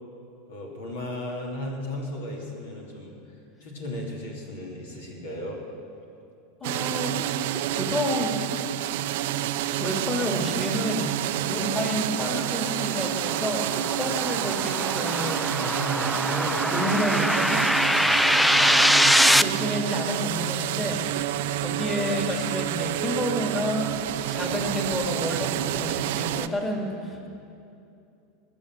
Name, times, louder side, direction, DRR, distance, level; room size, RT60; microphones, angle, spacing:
voice 1, 0.5-3.2 3.6-5.6 11.3-11.6 15.5-16.7 17.9-18.7 27.0-27.2, left 1 dB, 75° left, -1 dB, 2.7 m, -35 dB
voice 2, 6.6-7.2 7.5-8.5 9.8-15.5 16.7-17.6 19.4-23.9 24.3-27.3, left 1 dB, 20° left, 1 dB, 2.2 m, -30 dB
sound 1, 6.6-26.5, right 13 dB, 65° right, 0.5 m, -28 dB
sound 2, 12.6-19.4, equal, 5° left, 0.4 m, -23 dB
20.5 x 7.1 x 7.4 m, 2.6 s
hypercardioid pair, 85°, 0 cm